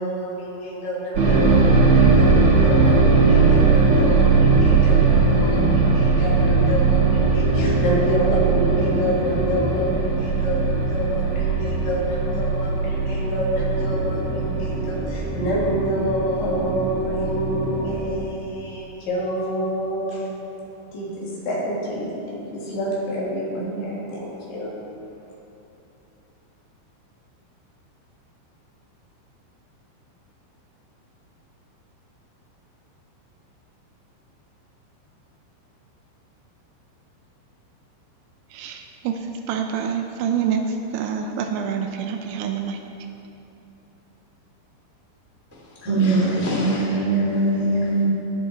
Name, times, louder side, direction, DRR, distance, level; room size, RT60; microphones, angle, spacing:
voice 1, 0.0-20.3 20.9-24.8, equal, 70° left, -6 dB, 5.1 m, -27 dB
sound 1, 1.1-18.1, right 4 dB, 55° right, 2.0 m, -19 dB
voice 2, 38.5-42.8, right 7 dB, 80° right, 5 dB, 2.8 m, -27 dB
voice 3, 45.7-48.1, right 2 dB, 10° right, -6 dB, 0.8 m, -21 dB
20.0 x 7.8 x 4.5 m, 2.9 s
omnidirectional pair, 5.5 m